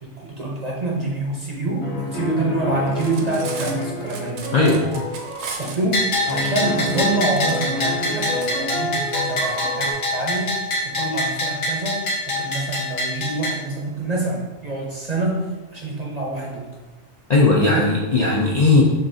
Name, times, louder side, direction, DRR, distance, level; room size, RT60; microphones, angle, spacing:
voice 1, 0.0-4.5 5.4-16.7 17.6-17.8, right 2 dB, 45° right, -3 dB, 0.6 m, -26 dB
sound 1, 1.8-5.6 6.3-9.9, left 1 dB, 30° left, 0.8 m, -29 dB
Cutlery silverware, 2.9-8.5, right 5 dB, 70° right, 0.9 m, -37 dB
Bell, 5.9-13.5, left 1 dB, 80° left, 1.5 m, -25 dB
voice 2, 17.3-18.8, left 3 dB, 50° left, -3 dB, 0.5 m, -17 dB
6.6 x 2.6 x 2.6 m, 1.2 s
omnidirectional pair, 1.3 m